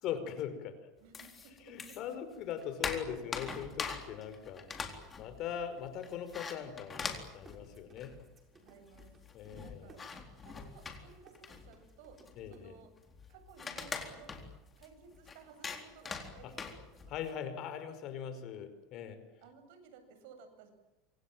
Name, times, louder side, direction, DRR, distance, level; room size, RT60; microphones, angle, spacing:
voice 1, 0.0-0.8 1.7-4.7 5.2-8.2 9.3-9.9 12.4-12.8 16.4-16.5 17.1-19.2, left 8 dB, 45° left, 11 dB, 5.2 m, -41 dB
voice 2, 1.0-2.2 5.2-5.5 8.6-9.2 9.5-12.9 13.3-14.4 14.8-17.4 19.4-20.7, right 5 dB, 70° right, 8 dB, 7.8 m, -57 dB
sound 1, 1.1-2.1 2.5-8.4 8.6-8.7 8.9-17.3, left 5 dB, 20° left, 3.9 m, -43 dB
sound 2, 7.3-12.6, right 4 dB, 20° right, 6.9 m, -60 dB
27.5 x 26.0 x 7.7 m, 0.97 s
supercardioid pair, 145°, 0 cm